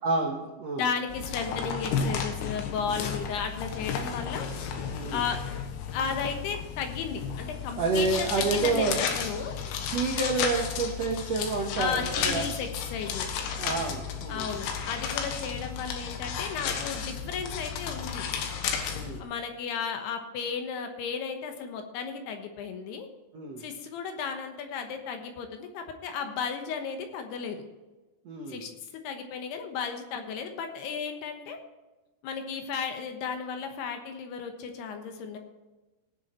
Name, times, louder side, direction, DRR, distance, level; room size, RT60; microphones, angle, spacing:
voice 1, 0.0-0.9 4.9-5.2 7.8-9.0 9.9-12.5 13.6-14.6 18.9-19.3 23.3-23.7 28.2-28.7, right 3 dB, 70° right, 0 dB, 1.5 m, -29 dB
voice 2, 0.8-4.5 5.1-5.4 5.9-9.5 11.8-13.3 14.3-18.3 19.2-23.1 23.6-27.6 28.5-28.7 29.0-31.6 32.2-35.4, left 6 dB, 75° left, 5 dB, 3.0 m, -34 dB
sound 1, 1.1-19.2, left 7 dB, 90° left, 3.6 m, -33 dB
18.5 x 7.2 x 4.4 m, 1.2 s
omnidirectional pair, 5.1 m